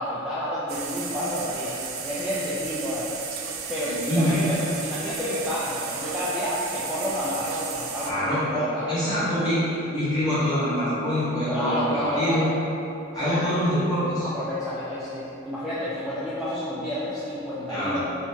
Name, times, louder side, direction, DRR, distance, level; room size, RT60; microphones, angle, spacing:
voice 1, 0.0-3.1 3.7-9.3 11.5-12.5 13.1-13.4 14.2-18.0, left 1 dB, 5° right, -11 dB, 0.3 m, -30 dB
sound 1, 0.7-8.1, right 6 dB, 85° right, 0.3 m, -34 dB
voice 2, 4.1-4.4 8.0-8.4 8.9-9.6 9.9-12.5 13.1-14.3 17.7-18.0, equal, 20° left, -12 dB, 1.0 m, -25 dB
2.8 x 2.7 x 3.5 m, 2.9 s
head